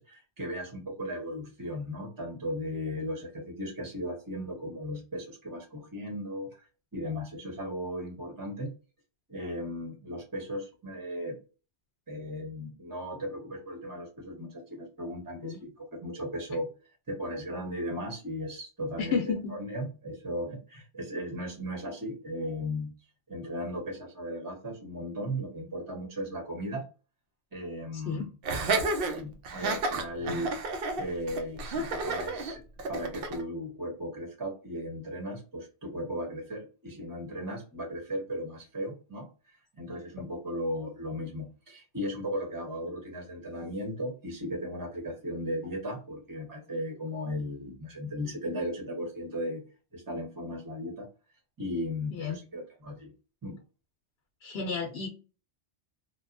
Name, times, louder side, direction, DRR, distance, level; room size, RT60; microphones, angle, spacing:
voice 1, 0.0-6.6 6.9-8.7 9.3-11.4 12.1-16.7 17.1-19.2 19.5-22.9 23.3-26.9 27.5-28.3 29.0-30.6 31.0-32.6 32.9-49.6 49.9-51.1 51.6-53.1 53.4-53.6, equal, 20° right, 0 dB, 0.9 m, -36 dB
voice 2, 19.0-19.5 27.9-28.2 52.1-52.4 54.4-55.1, left 5 dB, 70° left, 2 dB, 0.8 m, -32 dB
Laughter, 28.4-33.4, right 3 dB, 60° right, 0.7 m, -31 dB
2.9 x 2.2 x 2.5 m, 0.34 s
omnidirectional pair, 1.2 m